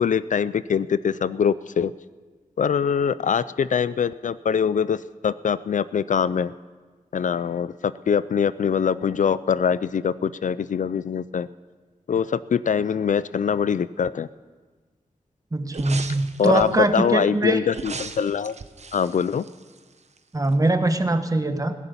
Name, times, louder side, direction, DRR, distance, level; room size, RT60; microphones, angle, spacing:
voice 1, 0.0-1.9 2.6-6.5 7.1-11.5 12.1-14.3 16.4-18.6 18.9-19.4, left 7 dB, 65° left, 17 dB, 0.4 m, -23 dB
voice 2, 15.5-17.6 20.3-21.7, right 2 dB, 25° right, 8 dB, 1.1 m, -22 dB
sound 1, 15.7-16.9 17.7-20.2 20.5-20.6, right 4 dB, 50° right, 0.8 m, -37 dB
15.5 x 11.0 x 7.0 m, 1.4 s
wide cardioid pair, 105°, 14 cm